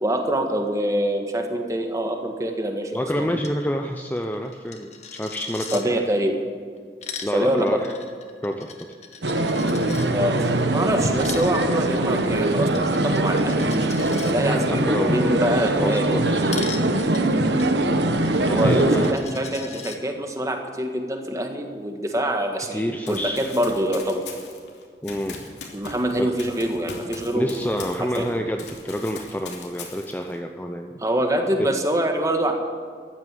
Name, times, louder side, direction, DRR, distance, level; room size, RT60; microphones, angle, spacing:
voice 1, 0.0-3.3 5.7-6.3 7.3-7.8 10.1-13.7 14.2-16.1 18.5-24.2 25.7-27.7 28.2-28.3 31.0-32.5, right 1 dB, 20° right, 4 dB, 1.6 m, -25 dB
voice 2, 2.9-6.2 7.2-7.9 8.4-8.9 14.4-15.4 15.7-16.7 18.5-19.1 22.7-23.5 25.0-25.4 26.2-26.3 27.3-30.9 31.6-31.7, equal, 10° left, 4 dB, 0.6 m, -28 dB
Coin (dropping), 3.4-3.6 3.8-3.9 4.2-5.8 6.8-10.1 11.0-14.3 16.5-20.0, left 6 dB, 40° left, 1.4 m, -39 dB
sound 1, 9.2-19.1, right 1 dB, 85° right, 1.2 m, -22 dB
Run, 23.1-28.3 28.6-30.3, left 4 dB, 85° left, 2.9 m, -39 dB
14.5 x 11.5 x 7.6 m, 2.1 s
head